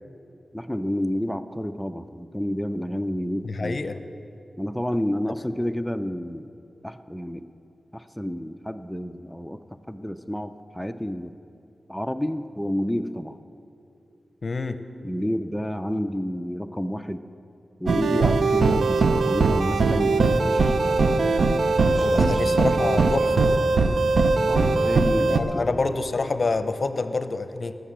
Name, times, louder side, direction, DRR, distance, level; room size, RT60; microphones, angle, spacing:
voice 1, 0.5-3.8 4.6-6.5 6.8-7.5 7.9-11.3 11.9-13.4 15.0-17.2 17.8-21.0 21.9-22.4 24.5-25.7, equal, 5° left, 8 dB, 0.5 m, -30 dB
voice 2, 3.4-4.0 14.4-14.8 22.0-23.3 25.3-27.8, left 3 dB, 60° left, 10 dB, 0.6 m, -27 dB
sound 1, 17.9-25.4, right 3 dB, 85° right, 0.7 m, -20 dB
19.0 x 6.7 x 7.4 m, 2.7 s
cardioid pair, 55°, 0 cm